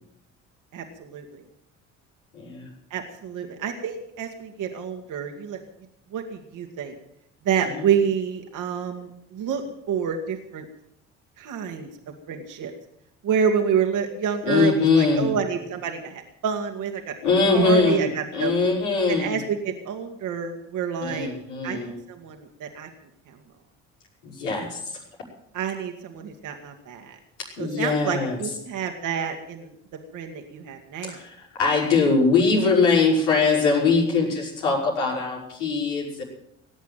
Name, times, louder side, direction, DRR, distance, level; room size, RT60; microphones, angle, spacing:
voice 1, 0.7-1.4 2.9-5.6 6.1-7.0 7.4-10.7 11.4-11.9 12.3-12.7 13.2-17.2 17.5-18.6 19.1-21.3 21.6-22.9 23.3-23.4 25.5-27.2 27.6-29.7 30.1-31.2, right 7 dB, 60° right, 4 dB, 2.0 m, -28 dB
voice 2, 2.3-2.7 7.7-7.8 14.5-15.3 17.2-18.0 18.3-19.4 21.0-22.0 24.2-24.8 27.4-28.4 31.0-36.2, left 4 dB, 85° left, -3 dB, 5.7 m, -22 dB
18.5 x 8.3 x 9.0 m, 0.78 s
hypercardioid pair, 60°, 35 cm